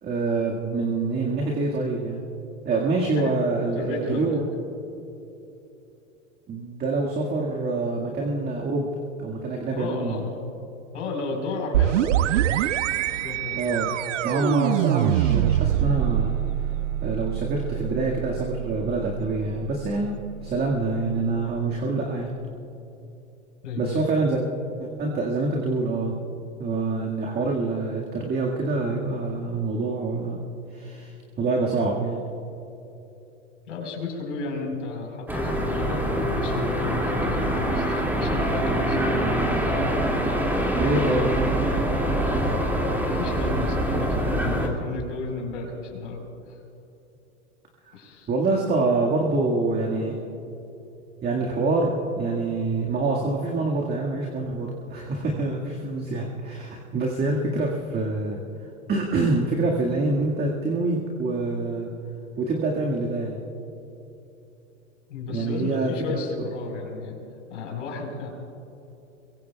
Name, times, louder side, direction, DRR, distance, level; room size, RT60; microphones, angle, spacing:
voice 1, 0.0-2.2 2.6-4.4 6.5-8.9 9.2-10.2 13.5-13.9 14.2-16.4 17.0-22.3 23.8-24.5 24.8-26.1 26.6-30.4 30.7-32.2 40.8-41.3 48.3-50.2 51.2-58.4 58.9-61.9 62.4-63.4 65.3-66.2, right 3 dB, 25° right, -1 dB, 1.9 m, -26 dB
voice 2, 3.8-4.4 9.7-10.3 10.9-12.7 13.2-13.7 23.6-24.0 33.7-39.0 39.5-39.8 43.0-46.6 47.9-48.3 65.1-67.1 67.5-68.3, left 3 dB, 70° left, 0 dB, 4.5 m, -33 dB
sound 1, 11.7-21.3, right 12 dB, 70° right, 0.5 m, -25 dB
sound 2, 35.3-44.7, right 1 dB, 5° right, 2.3 m, -24 dB
23.0 x 23.0 x 2.3 m, 2.9 s
hypercardioid pair, 100°, 37 cm